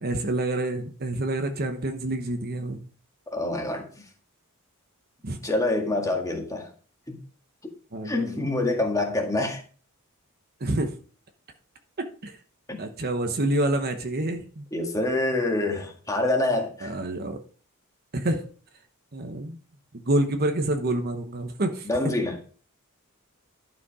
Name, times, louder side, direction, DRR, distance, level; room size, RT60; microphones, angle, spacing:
voice 1, 0.0-2.8 5.2-5.4 7.9-8.5 10.6-10.9 12.0-12.4 12.8-14.7 16.8-17.4 18.1-18.5 19.1-19.6 20.0-21.9, right 1 dB, 45° right, 7 dB, 0.9 m, -27 dB
voice 2, 3.3-3.9 5.4-6.7 7.1-7.2 8.0-9.6 12.7-12.8 14.7-16.9 21.8-22.4, left 2 dB, 15° left, 2 dB, 1.8 m, -26 dB
11.5 x 5.1 x 4.8 m, 0.41 s
head